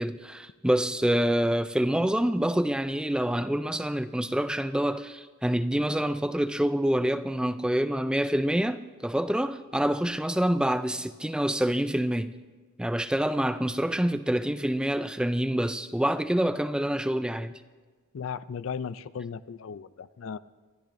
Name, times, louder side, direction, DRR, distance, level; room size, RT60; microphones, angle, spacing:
voice 1, 0.0-12.3 12.8-17.6, right 1 dB, 5° right, 0.3 m, -26 dB
voice 2, 18.1-20.4, left 6 dB, 75° left, 0.4 m, -36 dB
25.5 x 13.5 x 2.6 m
head